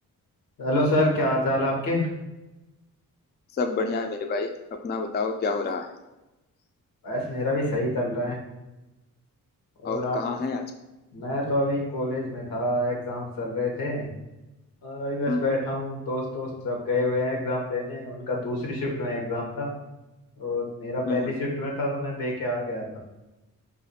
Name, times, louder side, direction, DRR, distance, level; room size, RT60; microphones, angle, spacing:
voice 1, 0.6-2.1 7.0-8.4 9.8-10.4 11.1-14.1 14.8-19.8 20.4-23.0, left 1 dB, 90° left, 0 dB, 1.0 m, -27 dB
voice 2, 3.6-4.5 4.8-5.9 9.8-10.6 15.3-15.5 21.1-21.3, left 4 dB, 30° left, 4 dB, 0.4 m, -28 dB
2.5 x 2.5 x 4.0 m, 1.0 s
cardioid pair, 80°, 34 cm